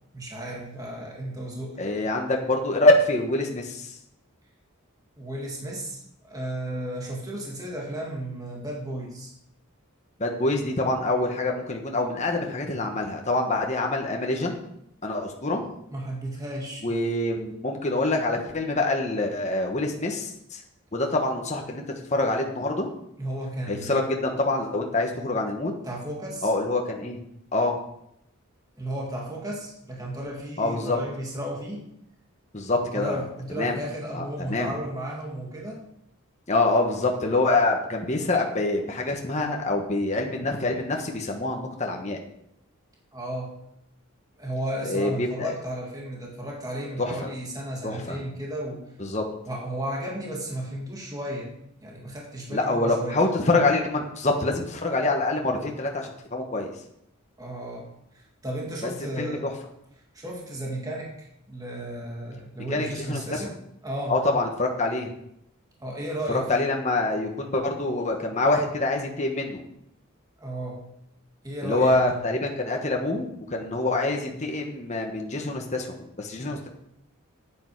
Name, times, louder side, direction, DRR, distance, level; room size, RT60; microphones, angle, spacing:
voice 1, 0.1-1.8 5.2-9.3 15.9-16.9 23.2-24.0 25.8-26.5 28.8-31.8 32.8-35.8 43.1-43.6 44.4-48.8 49.5-51.5 51.8-53.2 57.4-57.9 58.1-59.5 60.1-63.5 63.8-64.2 65.8-66.7 70.4-70.8 71.4-72.1, right 1 dB, 15° right, -2 dB, 2.1 m, -34 dB
voice 2, 1.8-4.0 10.2-14.6 15.0-15.6 16.8-20.6 20.9-21.8 22.1-22.9 23.7-25.7 26.4-27.2 27.5-27.8 30.6-31.0 32.5-33.2 33.6-33.8 34.1-34.7 36.5-42.2 44.8-45.6 47.0-47.1 47.8-48.2 49.0-49.2 52.5-56.7 59.2-59.4 62.7-63.4 64.1-65.1 66.3-69.6 71.6-76.7, left 2 dB, 35° left, 1 dB, 1.3 m, -25 dB
10.0 x 8.9 x 4.8 m, 0.75 s
head